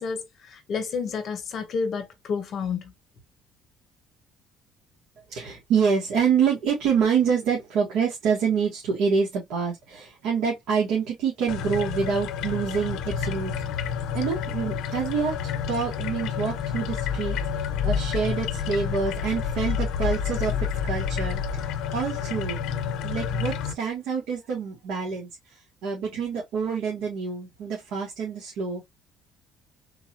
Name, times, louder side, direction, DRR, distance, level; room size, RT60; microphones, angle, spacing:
voice 1, 0.0-2.9, left 5 dB, 40° left, 1.0 m, -30 dB
voice 2, 5.3-13.5 14.1-22.6 23.0-28.9, right 6 dB, 85° right, 1.5 m, -27 dB
sound 1, 11.5-23.7, left 7 dB, 70° left, 0.5 m, -29 dB
3.8 x 3.0 x 2.8 m
cardioid pair, 175°, 0 cm